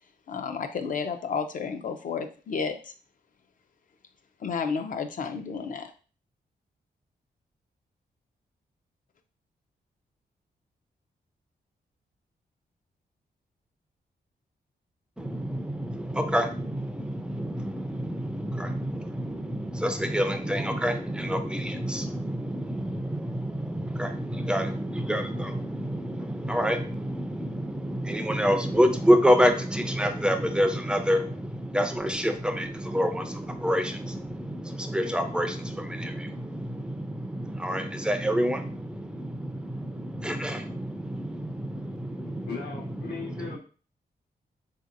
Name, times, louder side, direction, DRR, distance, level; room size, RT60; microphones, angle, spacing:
voice 1, 0.3-2.9 4.4-5.9, left 5 dB, 50° left, 7 dB, 0.4 m, -31 dB
voice 2, 15.2-42.5, equal, 5° right, 6 dB, 0.4 m, -28 dB
voice 3, 42.3-43.6, left 5 dB, 80° left, 0 dB, 1.0 m, -38 dB
3.8 x 2.8 x 2.5 m, 0.38 s
wide cardioid pair, 135°, 17 cm